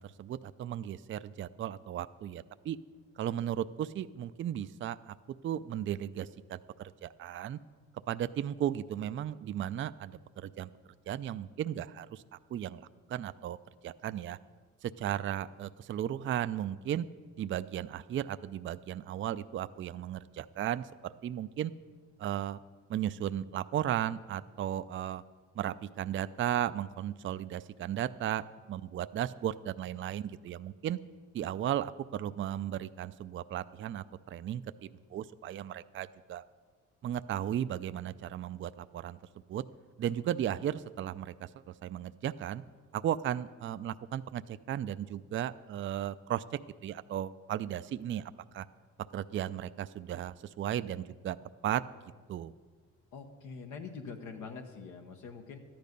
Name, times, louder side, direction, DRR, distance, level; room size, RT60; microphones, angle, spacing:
voice 1, 0.0-2.8 3.2-5.1 5.4-7.6 8.1-10.7 11.1-12.2 12.5-13.6 13.8-14.4 14.8-17.1 17.4-21.7 22.2-22.6 22.9-25.2 25.6-31.0 31.3-36.4 37.0-39.2 39.5-39.6 40.0-41.5 41.8-42.6 42.9-46.4 46.8-48.7 49.1-51.4 51.6-51.8 52.3-52.5, right 11 dB, 40° right, 13 dB, 0.4 m, -35 dB
voice 2, 53.1-55.6, left 5 dB, 80° left, 3 dB, 1.1 m, -44 dB
13.5 x 10.5 x 5.3 m, 1.6 s
cardioid pair, 90°, 30 cm